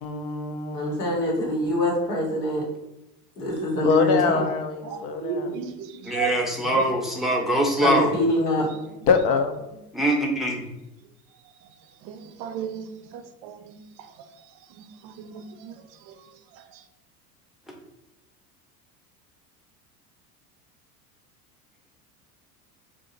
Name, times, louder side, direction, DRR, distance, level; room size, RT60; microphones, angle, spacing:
voice 1, 0.0-1.0 3.8-5.7 9.1-9.6, left 5 dB, 70° left, 6 dB, 0.7 m, -24 dB
voice 2, 0.7-2.6 3.4-4.4 7.8-8.7, equal, 90° left, -2 dB, 1.3 m, -24 dB
voice 3, 4.8-6.9 12.0-12.9 13.1-13.7 14.8-15.8, right 8 dB, 55° right, 9 dB, 0.5 m, -34 dB
voice 4, 6.0-8.1 9.9-10.6, equal, ahead, -1 dB, 0.7 m, -23 dB
2.7 x 2.4 x 3.8 m, 0.94 s
hypercardioid pair, 80°, 46 cm